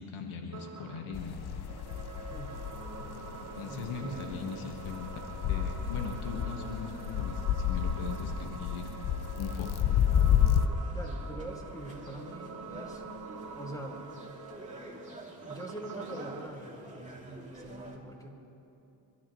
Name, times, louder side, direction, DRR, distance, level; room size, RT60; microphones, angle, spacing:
voice 1, 0.0-1.4 3.5-5.1 5.5-8.9 9.4-9.7, left 5 dB, 75° left, 3 dB, 1.7 m, -40 dB
sound 1, 0.5-16.5, right 4 dB, 35° right, 1.4 m, -46 dB
sound 2, 1.1-10.7, left 9 dB, 50° left, 1.0 m, -30 dB
voice 2, 3.7-4.3 10.8-13.0 13.5-14.1 15.1-18.5, right 1 dB, 5° left, -1 dB, 4.4 m, -44 dB
sound 3, 9.5-18.0, right 2 dB, 15° right, 2.9 m, -49 dB
28.0 x 14.0 x 3.2 m, 2.7 s
supercardioid pair, 65°, 49 cm